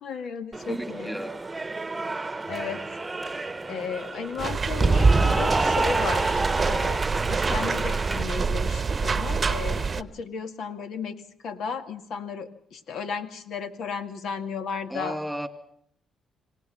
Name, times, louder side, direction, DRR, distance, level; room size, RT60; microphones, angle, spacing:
voice 1, 0.0-1.2 2.5-2.8 3.3-15.2, left 6 dB, 75° left, 2.2 m, -34 dB
Cheering / Applause, 0.5-8.2, right 3 dB, 20° right, 1.1 m, -27 dB
voice 2, 0.7-1.4 14.9-15.5, equal, ahead, 2.5 m, -33 dB
sound 1, 4.4-10.0, right 5 dB, 35° right, 1.0 m, -27 dB
26.0 x 18.5 x 5.8 m
cardioid pair, 90°, 0 cm